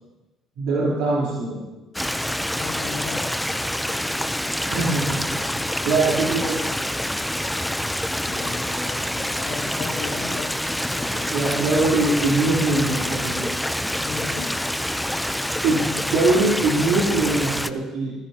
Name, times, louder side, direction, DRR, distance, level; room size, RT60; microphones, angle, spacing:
voice 1, 0.6-1.6 4.6-5.3 5.5-6.7 11.1-13.5 15.6-18.1, right 2 dB, 85° right, -7 dB, 3.6 m, -22 dB
Stream, 1.9-17.7, equal, 5° left, 0.6 m, -26 dB
voice 2, 2.6-3.4 8.2-11.8 14.0-14.5, left 5 dB, 90° left, -1 dB, 2.6 m, -36 dB
24.5 x 14.5 x 2.9 m, 1.1 s
cardioid pair, 85°, 0 cm